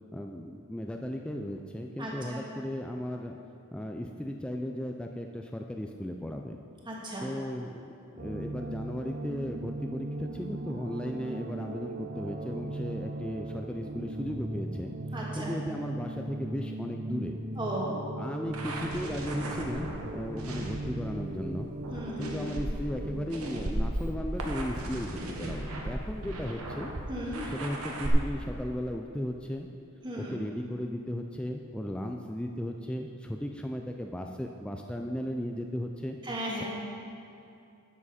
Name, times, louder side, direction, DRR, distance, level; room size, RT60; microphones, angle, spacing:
voice 1, 0.1-3.4 3.7-6.6 7.2-7.7 8.1-14.9 15.4-17.4 18.2-19.9 20.1-21.7 22.2-26.9 27.5-29.7 30.2-36.2, equal, 5° left, 2 dB, 0.3 m, -36 dB
voice 2, 2.0-2.4 6.8-7.3 15.1-15.5 17.5-18.0 21.9-22.4 27.1-27.4 30.0-30.4 36.2-36.6, right 1 dB, 20° right, -5 dB, 1.7 m, -35 dB
sound 1, 8.2-23.2, right 2 dB, 40° right, 0.6 m, -38 dB
sound 2, 18.4-28.1, right 1 dB, 75° right, 1.1 m, -37 dB
11.0 x 7.4 x 4.2 m, 2.6 s
head